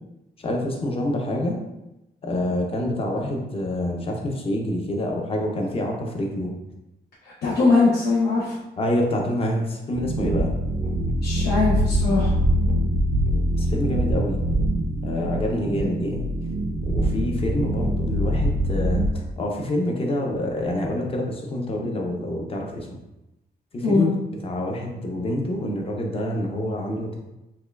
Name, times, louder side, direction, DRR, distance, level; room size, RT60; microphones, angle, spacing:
voice 1, 0.4-1.6 2.2-6.5 8.8-10.5 13.5-14.4 15.0-16.4 16.8-22.9 23.7-24.2 24.4-27.2, left 1 dB, 35° left, 0 dB, 0.6 m, -27 dB
voice 2, 7.4-8.6 11.2-12.3 23.8-24.0, left 3 dB, 75° left, -7 dB, 0.8 m, -20 dB
sound 1, 9.9-19.1, right 1 dB, 45° right, 0.4 m, -24 dB
5.3 x 2.2 x 2.3 m, 0.94 s
wide cardioid pair, 155°, 17 cm